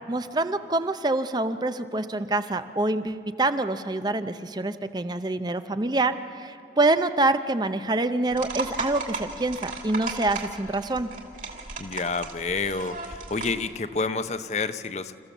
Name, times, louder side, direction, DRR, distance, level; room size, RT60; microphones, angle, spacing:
voice 1, 0.1-11.1, right 2 dB, 25° right, 10 dB, 0.6 m, -26 dB
sound 1, 8.3-13.6, right 3 dB, 45° right, 2.5 m, -36 dB
voice 2, 11.8-15.1, left 4 dB, 40° left, 11 dB, 0.7 m, -29 dB
28.5 x 14.5 x 7.2 m, 2.6 s
head